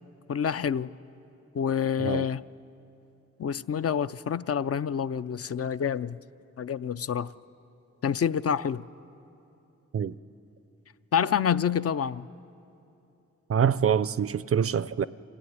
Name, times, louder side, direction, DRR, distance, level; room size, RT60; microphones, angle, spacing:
voice 1, 0.3-0.9 1.5-2.4 3.4-6.2 6.6-7.3 8.0-8.8 11.1-12.3, left 8 dB, 55° left, 0.5 m, -27 dB
voice 2, 13.5-15.1, right 8 dB, 50° right, 0.5 m, -25 dB
25.0 x 16.0 x 9.6 m
cardioid pair, 80°, 29 cm